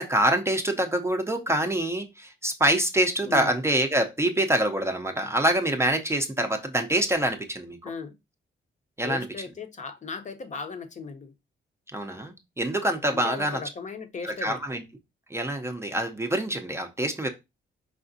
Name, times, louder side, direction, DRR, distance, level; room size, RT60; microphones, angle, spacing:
voice 1, 0.0-7.9 9.0-9.3 11.9-13.6 14.2-14.8 15.3-17.3, right 1 dB, 15° right, 0.5 m, -25 dB
voice 2, 7.8-8.1 9.0-11.3 13.1-14.6, left 5 dB, 40° left, 0.6 m, -37 dB
4.9 x 3.4 x 2.6 m
wide cardioid pair, 145°, 20 cm